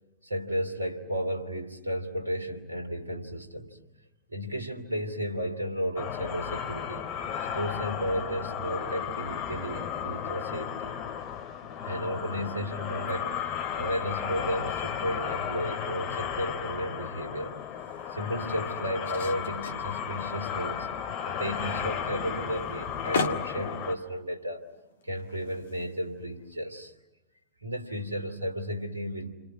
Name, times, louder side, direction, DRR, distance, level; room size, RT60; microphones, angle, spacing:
voice 1, 0.2-3.8 4.3-7.2 7.5-11.0 11.8-17.5 18.1-20.9 21.3-24.7 25.0-26.9 27.6-29.3, equal, 90° right, 6 dB, 2.9 m, -33 dB
sound 1, 6.0-23.9, left 8 dB, 40° left, 2.4 m, -34 dB
sound 2, 16.2-26.6, left 4 dB, 70° left, 1.8 m, -40 dB
29.5 x 27.0 x 6.2 m, 0.98 s
figure-of-eight pair, 95°, 0 cm